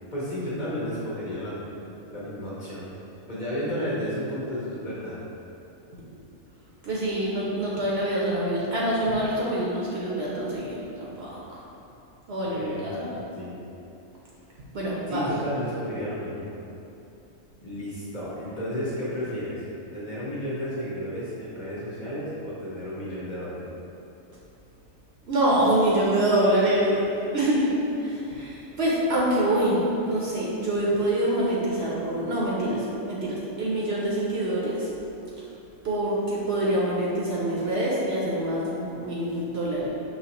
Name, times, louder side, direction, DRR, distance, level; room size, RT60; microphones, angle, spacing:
voice 1, 0.1-1.7 2.1-2.9 3.3-5.2 12.4-13.5 15.1-16.5 17.6-19.6 19.9-23.7, equal, 40° left, -9 dB, 0.8 m, -32 dB
voice 2, 6.8-11.6 12.3-13.1 14.7-15.3 25.2-34.9 35.4-35.5 35.8-39.9, right 1 dB, 60° right, -6 dB, 0.8 m, -25 dB
5.0 x 3.0 x 2.9 m, 2.8 s
omnidirectional pair, 1.4 m